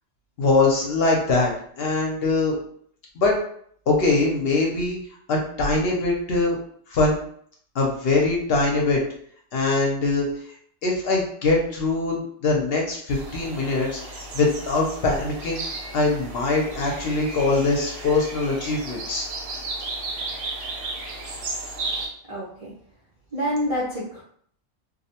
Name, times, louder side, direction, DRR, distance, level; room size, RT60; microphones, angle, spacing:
voice 1, 0.4-2.6 3.2-3.4 3.9-5.0 5.3-6.6 6.9-7.2 7.7-9.0 9.5-10.3 10.8-15.6 15.9-19.2, left 3 dB, 60° left, -1 dB, 0.7 m, -22 dB
sound 1, 13.1-22.1, right 2 dB, 80° right, 1.0 m, -34 dB
voice 2, 22.3-22.7 23.3-24.2, equal, 50° right, -7 dB, 0.4 m, -27 dB
2.5 x 2.0 x 2.7 m, 0.63 s
omnidirectional pair, 1.3 m